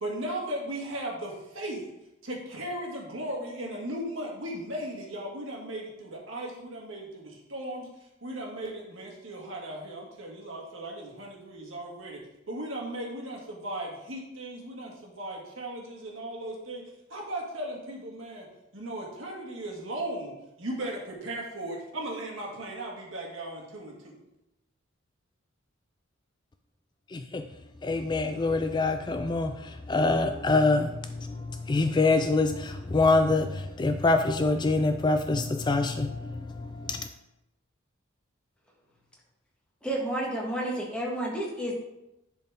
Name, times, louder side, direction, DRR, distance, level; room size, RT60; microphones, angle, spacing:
voice 1, 0.0-1.3 1.6-1.8 2.3-7.0 7.5-7.8 8.2-12.2 12.5-13.4 13.6-14.9 15.2-16.8 17.1-18.4 18.7-20.3 20.6-21.0 21.2-23.9, right 1 dB, 70° right, 1.9 m, -36 dB
voice 2, 27.1-27.4 27.8-37.0, left 3 dB, 20° left, 0.3 m, -25 dB
voice 3, 39.8-41.7, right 1 dB, 5° left, 1.7 m, -30 dB
10.5 x 4.5 x 3.7 m
head